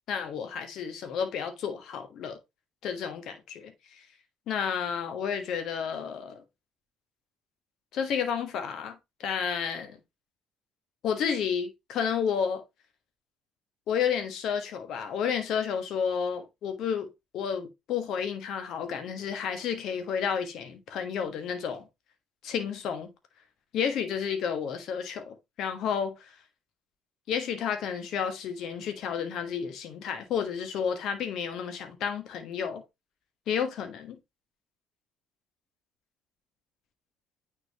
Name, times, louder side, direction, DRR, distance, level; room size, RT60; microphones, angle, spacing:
voice 1, 0.1-2.4 2.8-4.0 4.5-6.4 7.9-10.0 11.0-12.6 13.9-21.8 22.4-23.1 23.7-26.3 27.3-32.8 33.5-34.2, left 7 dB, 55° left, 1.3 m, -31 dB
9.2 x 3.8 x 2.9 m
figure-of-eight pair, 55°, 0 cm